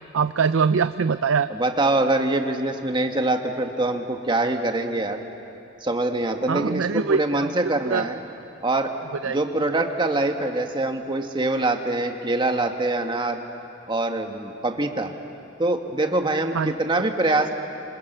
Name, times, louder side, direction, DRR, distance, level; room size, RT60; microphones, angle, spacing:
voice 1, 0.1-1.5 6.5-7.5 7.8-8.1 9.2-9.4 16.5-16.7, right 5 dB, 85° right, 12 dB, 0.5 m, -23 dB
voice 2, 1.5-5.2 5.8-8.2 8.6-8.9 9.2-13.4 13.9-15.1 15.6-17.5, right 2 dB, 25° right, 4 dB, 1.6 m, -24 dB
26.0 x 25.5 x 6.8 m, 2.7 s
head